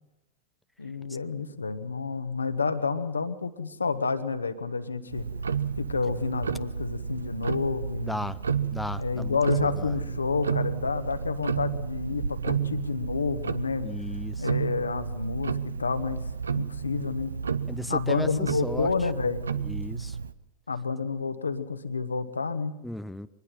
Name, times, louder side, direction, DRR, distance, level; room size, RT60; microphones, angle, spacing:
voice 1, 0.8-5.3 5.8-8.2 9.0-13.9 14.4-17.3 17.9-19.4 20.7-22.7, left 4 dB, 75° left, 9 dB, 1.4 m, -29 dB
Tick-tock, 5.1-20.3, right 6 dB, 75° right, 0.7 m, -32 dB
voice 2, 8.1-8.4 8.7-9.3 13.8-14.3 17.7-18.3 18.6-18.9 19.7-20.2 22.8-23.3, left 1 dB, 5° left, 12 dB, 0.6 m, -34 dB
23.5 x 20.5 x 5.8 m, 0.96 s
figure-of-eight pair, 90°, 0 cm